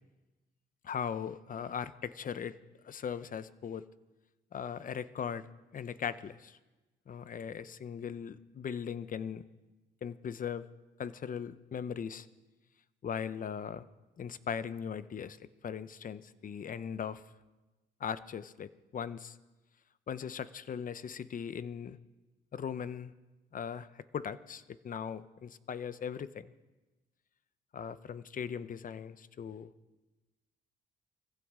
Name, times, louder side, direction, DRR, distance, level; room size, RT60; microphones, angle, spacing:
voice 1, 0.8-2.6 2.8-3.9 4.5-5.5 5.7-6.6 7.1-9.4 10.0-10.7 11.0-12.3 13.0-13.9 14.2-17.2 18.0-19.4 20.1-22.0 22.5-23.1 23.5-23.9 24.1-26.5 27.7-29.7, left 7 dB, 45° left, 15 dB, 0.7 m, -39 dB
23.0 x 15.0 x 3.7 m, 1.1 s
cardioid pair, 90°, 20 cm